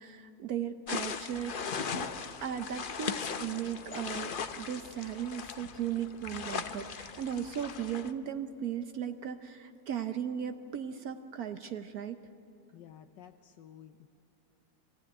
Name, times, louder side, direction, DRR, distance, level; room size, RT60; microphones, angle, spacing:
voice 1, 0.0-2.1 2.4-12.2, right 9 dB, 65° right, 8 dB, 1.1 m, -37 dB
sound 1, 0.9-8.1, left 6 dB, 60° left, 0.5 m, -38 dB
sound 2, 5.6-8.1 8.7-8.8 9.4-9.5, right 3 dB, 45° right, 1.3 m, -59 dB
voice 2, 12.7-14.1, left 10 dB, 80° left, 6 dB, 1.3 m, -53 dB
24.0 x 15.0 x 9.9 m, 2.7 s
omnidirectional pair, 1.9 m